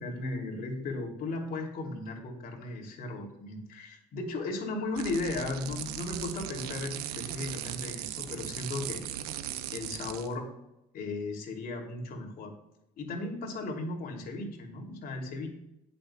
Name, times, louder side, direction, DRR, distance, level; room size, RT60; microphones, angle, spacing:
voice 1, 0.0-9.0 9.7-10.5 10.9-12.5 13.0-15.5, left 2 dB, 50° left, 1 dB, 2.9 m, -36 dB
sound 1, 4.9-10.3, right 11 dB, 85° right, 0.9 m, -38 dB
19.5 x 7.0 x 2.4 m, 0.87 s
hypercardioid pair, 70°, 19 cm